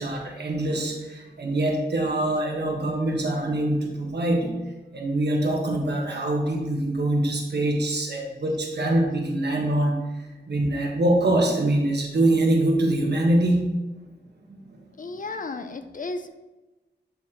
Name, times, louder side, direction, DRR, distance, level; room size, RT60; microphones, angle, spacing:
voice 1, 0.0-4.5 4.9-9.9 10.5-13.7 14.5-14.8, right 1 dB, 65° right, 0 dB, 1.2 m, -24 dB
voice 2, 15.0-16.3, left 3 dB, 45° left, 9 dB, 0.4 m, -33 dB
8.1 x 4.1 x 2.9 m, 1.1 s
wide cardioid pair, 105°, 19 cm